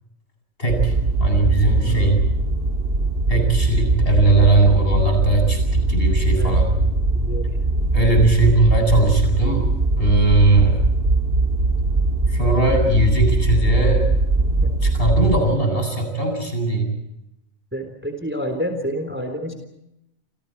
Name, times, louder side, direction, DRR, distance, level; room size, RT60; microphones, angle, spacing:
voice 1, 0.6-0.9 1.2-2.3 3.3-6.7 7.9-9.7 10.0-10.8 12.3-14.1 14.8-16.9, right 2 dB, 45° left, 4 dB, 8.4 m, -19 dB
sound 1, 0.7-15.4, right 2 dB, 40° right, 2.1 m, -20 dB
voice 2, 1.8-2.3 6.4-6.6 7.1-7.6 14.6-14.7 17.7-19.5, equal, 10° right, 5 dB, 3.8 m, -28 dB
29.0 x 28.5 x 4.6 m, 0.85 s
omnidirectional pair, 1.4 m